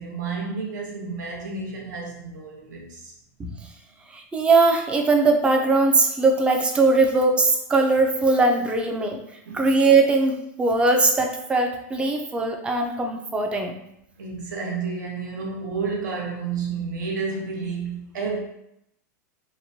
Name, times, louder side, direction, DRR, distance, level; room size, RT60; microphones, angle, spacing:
voice 1, 0.0-3.1 9.5-9.7 14.2-18.4, right 4 dB, 85° right, 0 dB, 0.8 m, -31 dB
voice 2, 4.1-9.2 9.5-13.7, right 3 dB, 10° right, 3 dB, 0.3 m, -20 dB
2.9 x 2.1 x 2.7 m, 0.78 s
supercardioid pair, 140°, 10 cm